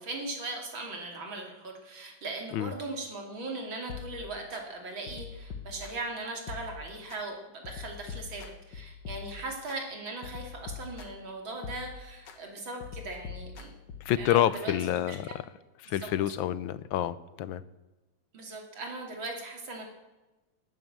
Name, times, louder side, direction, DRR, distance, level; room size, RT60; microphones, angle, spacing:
voice 1, 0.0-13.7 14.2-14.7 15.1-15.4 16.0-16.1 18.3-19.8, right 2 dB, 85° right, 2 dB, 3.6 m, -39 dB
sound 1, 3.9-4.6 5.1-6.1 6.5-7.2 7.6-9.8 10.2-11.3 11.6-12.4 12.8-14.2, left 6 dB, 65° left, 2.0 m, -43 dB
voice 2, 14.0-15.3 15.8-17.6, left 12 dB, 90° left, 16 dB, 1.5 m, -28 dB
19.0 x 8.9 x 7.5 m, 1.1 s
omnidirectional pair, 2.1 m